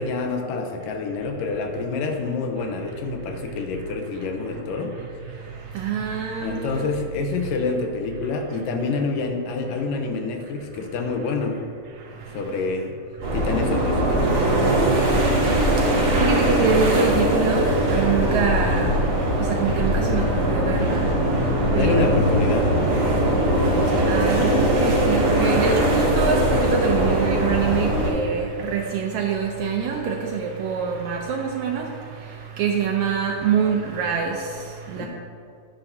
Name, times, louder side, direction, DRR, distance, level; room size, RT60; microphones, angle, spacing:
voice 1, 0.0-4.9 6.4-11.6 12.3-13.0 13.3-14.4 21.7-22.7 35.0-35.1, left 4 dB, 80° left, 4 dB, 2.4 m, -27 dB
voice 2, 5.7-6.8 12.3-12.4 15.8-19.0 19.4-21.5 21.7-22.3 23.8-35.1, right 6 dB, 75° right, 1 dB, 1.7 m, -25 dB
sound 1, 13.2-28.1, right 1 dB, 45° right, 2.6 m, -20 dB
10.0 x 9.8 x 2.7 m, 2.4 s
omnidirectional pair, 3.8 m